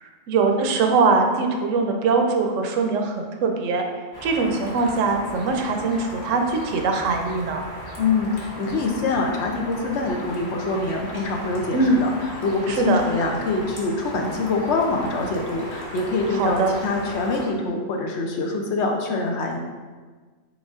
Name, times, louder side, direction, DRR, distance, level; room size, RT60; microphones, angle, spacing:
voice 1, 0.0-3.8 4.2-7.6 11.7-12.0 12.7-13.0 16.3-16.7, right 4 dB, 80° right, 3 dB, 0.9 m, -22 dB
sound 1, 4.1-17.5, equal, 20° left, 0.9 m, -37 dB
voice 2, 8.0-19.6, left 3 dB, 65° left, 2 dB, 0.8 m, -25 dB
5.1 x 3.8 x 2.4 m, 1.4 s
omnidirectional pair, 1.3 m